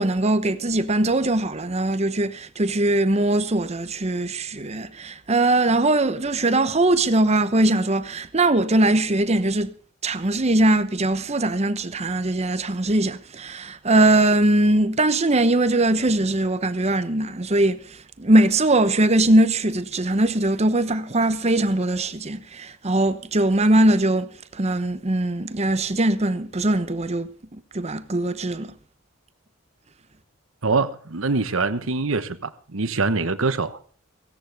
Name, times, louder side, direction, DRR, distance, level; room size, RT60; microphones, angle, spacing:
voice 1, 0.0-9.7 10.0-27.3 27.7-28.7, right 1 dB, 30° right, 0.9 m, -21 dB
voice 2, 30.6-33.8, right 3 dB, 75° right, 1.1 m, -24 dB
17.0 x 16.5 x 3.5 m
head